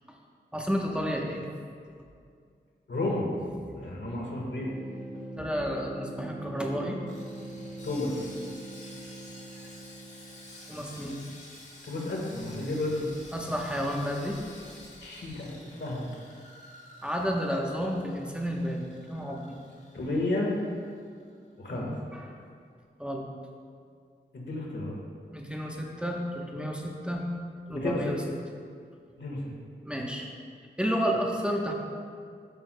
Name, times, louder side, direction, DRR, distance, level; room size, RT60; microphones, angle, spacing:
voice 1, 0.5-1.5 3.6-3.9 5.4-7.0 9.5-9.6 10.7-11.2 13.3-14.4 17.0-19.6 21.7-22.3 23.0-23.2 25.3-27.3 27.7-28.2 29.8-30.3 30.8-31.7, equal, 5° right, -1 dB, 0.9 m, -31 dB
voice 2, 2.9-3.3 3.8-4.7 7.8-8.3 11.8-13.1 15.0-16.1 19.9-20.5 21.6-21.9 24.3-25.0 27.7-28.1 29.2-29.5, left 2 dB, 75° left, -2 dB, 1.5 m, -32 dB
sound 1, 4.5-11.1, right 2 dB, 45° right, 1.9 m, -43 dB
Sawing, 7.1-21.3 21.6-21.7 22.2-22.3, left 2 dB, 40° left, 1.4 m, -51 dB
12.0 x 6.1 x 2.2 m, 2.2 s
wide cardioid pair, 55°, 19 cm